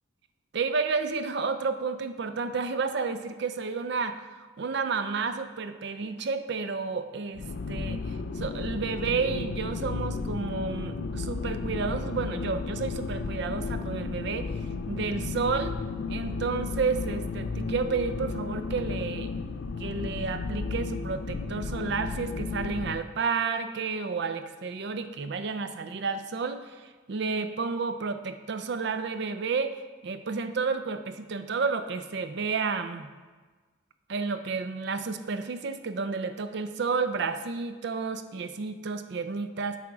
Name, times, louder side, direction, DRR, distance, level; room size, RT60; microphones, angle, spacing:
voice 1, 0.5-14.5 14.9-15.8 16.1-19.3 19.8-29.8 30.0-33.1 34.1-39.8, right 4 dB, 55° right, 10 dB, 0.4 m, -31 dB
sound 1, 7.4-23.0, left 4 dB, 55° left, 0.4 m, -33 dB
8.5 x 3.5 x 4.8 m, 1.3 s
head